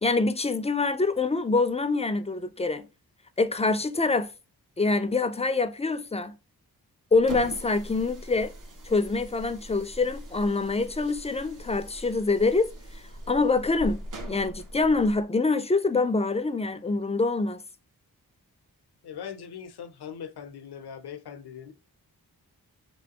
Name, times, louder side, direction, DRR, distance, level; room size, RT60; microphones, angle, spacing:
voice 1, 0.0-2.9 3.4-4.3 4.8-6.3 7.1-8.5 8.9-12.7 13.3-14.0 14.3-17.6, left 3 dB, 20° left, 0.3 m, -25 dB
sound 1, 7.1-15.2, right 1 dB, 55° right, 0.8 m, -41 dB
voice 2, 19.0-21.7, left 7 dB, 80° left, 0.6 m, -40 dB
3.3 x 3.1 x 2.8 m
wide cardioid pair, 70°, 38 cm